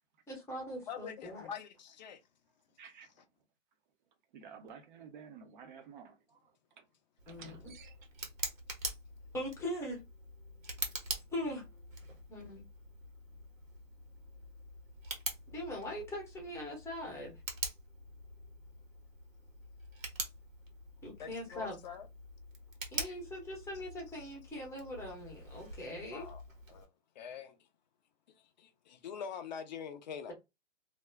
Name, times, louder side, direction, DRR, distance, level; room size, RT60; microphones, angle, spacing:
voice 1, 0.3-1.5 7.3-7.7 9.3-10.0 11.3-11.6 12.3-12.6 15.5-17.3 21.0-21.8 22.9-26.3, left 1 dB, 5° left, 0.7 m, -41 dB
voice 2, 0.9-2.2 21.2-22.1 26.1-26.4 26.7-26.9 27.2-27.6 28.4-30.3, left 7 dB, 35° left, 0.4 m, -44 dB
voice 3, 4.3-6.1 7.3-7.9, right 6 dB, 40° right, 0.6 m, -51 dB
Tick, 7.2-26.9, right 3 dB, 90° right, 1.1 m, -45 dB
2.4 x 2.0 x 3.3 m
hypercardioid pair, 135°, 39 cm